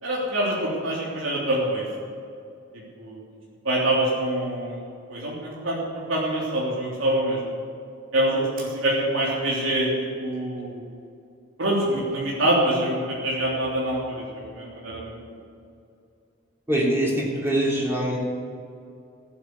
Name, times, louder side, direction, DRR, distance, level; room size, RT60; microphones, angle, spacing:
voice 1, 0.0-1.9 3.0-3.2 3.6-4.8 5.1-7.5 8.1-10.8 11.6-15.2, right 1 dB, 80° right, -5 dB, 3.4 m, -25 dB
voice 2, 16.7-18.2, right 1 dB, 10° right, -4 dB, 3.6 m, -23 dB
15.5 x 8.6 x 8.4 m, 2.5 s
head